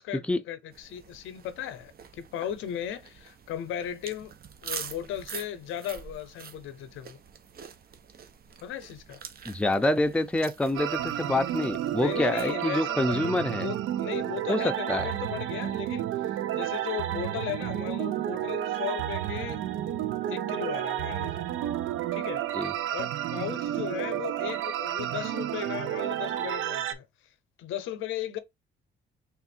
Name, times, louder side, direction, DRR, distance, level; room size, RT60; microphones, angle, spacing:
voice 1, 0.0-4.3 4.6-7.2 8.6-9.2 11.9-19.6 20.3-21.5 22.1-22.4 22.9-27.0 27.6-28.4, left 10 dB, 90° left, 0.7 m, -36 dB
sound 1, 0.7-12.5, right 7 dB, 50° right, 0.7 m, -45 dB
voice 2, 9.5-13.7 14.5-15.1 22.5-22.7, left 1 dB, 5° left, 0.5 m, -27 dB
sound 2, 10.7-26.9, right 12 dB, 85° right, 0.6 m, -31 dB
3.5 x 2.5 x 4.3 m
cardioid pair, 90°, 20 cm